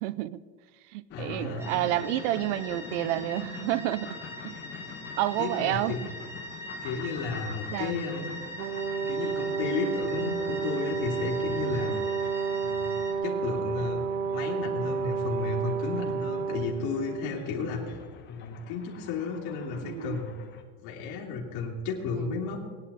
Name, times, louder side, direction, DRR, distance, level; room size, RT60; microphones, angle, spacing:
voice 1, 0.0-0.4 0.9-4.1 4.4-4.6 5.2-6.1 7.7-8.0 19.8-20.2 22.2-22.4, right 14 dB, 65° right, 17 dB, 0.7 m, -30 dB
voice 2, 1.1-1.8 5.4-6.1 6.8-8.4 9.1-12.0 12.6-12.9 13.2-14.0 14.3-18.0 18.3-20.3 20.8-22.6, left 4 dB, 50° left, -3 dB, 2.8 m, -33 dB
sound 1, 1.1-20.6, left 7 dB, 30° left, 1.2 m, -47 dB
sound 2, 1.6-13.1, equal, 5° right, 1.3 m, -42 dB
Brass instrument, 8.6-17.3, right 5 dB, 85° right, 1.4 m, -31 dB
18.0 x 10.5 x 4.2 m, 1.5 s
cardioid pair, 165°, 39 cm